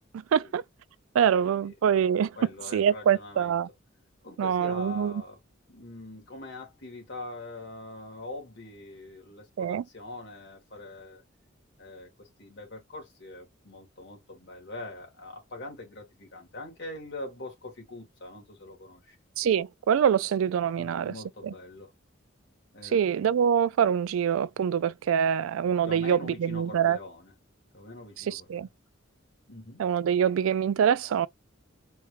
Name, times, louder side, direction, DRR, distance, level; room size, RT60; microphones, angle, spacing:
voice 1, 0.1-0.6 1.1-2.4 2.7-3.7 4.4-5.1 9.6-9.8 19.4-21.1 21.4-21.5 22.8-27.0 28.2-28.7 29.8-31.3, right 8 dB, 85° right, 0.3 m, -25 dB
voice 2, 1.4-1.7 2.0-2.1 2.4-3.6 4.2-5.4 5.7-11.2 11.8-19.2 20.7-21.9 22.7-23.0 25.8-27.3 27.7-28.7 29.5-29.8, left 2 dB, 60° left, 2.1 m, -43 dB
4.4 x 2.3 x 3.2 m
head